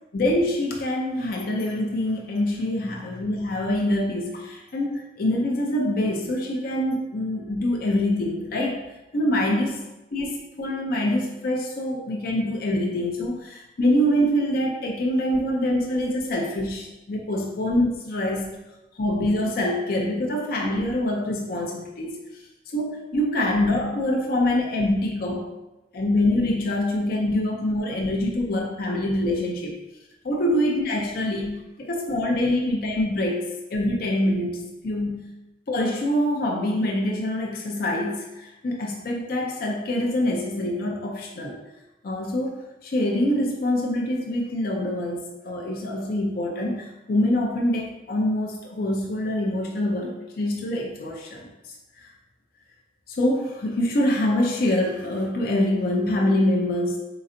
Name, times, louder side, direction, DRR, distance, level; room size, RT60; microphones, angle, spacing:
voice 1, 0.1-8.8 9.1-9.8 10.1-18.5 18.9-22.2 22.7-25.5 25.9-29.8 30.2-35.3 35.7-41.6 42.0-51.5 53.1-57.0, left 1 dB, 50° left, 0 dB, 0.5 m, -25 dB
4.1 x 3.9 x 2.6 m, 1.0 s
head